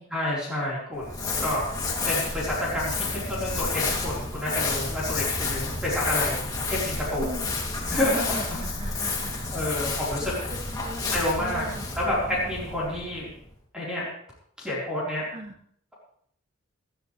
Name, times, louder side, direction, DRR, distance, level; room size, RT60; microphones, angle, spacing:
voice 1, 0.1-1.7 2.0-6.4 6.7-7.3 7.9-9.0 9.5-10.3 11.1-11.6 11.9-13.3 13.7-14.0 14.6-15.3, left 1 dB, 5° right, -8 dB, 4.5 m, -29 dB
Crumpling crinkling, 1.0-13.4, left 3 dB, 20° left, 2.9 m, -30 dB
voice 2, 7.2-7.5 8.3-9.7 10.2-11.9 15.3-15.5, right 1 dB, 35° right, 2 dB, 2.1 m, -40 dB
19.0 x 13.0 x 3.4 m, 0.65 s
head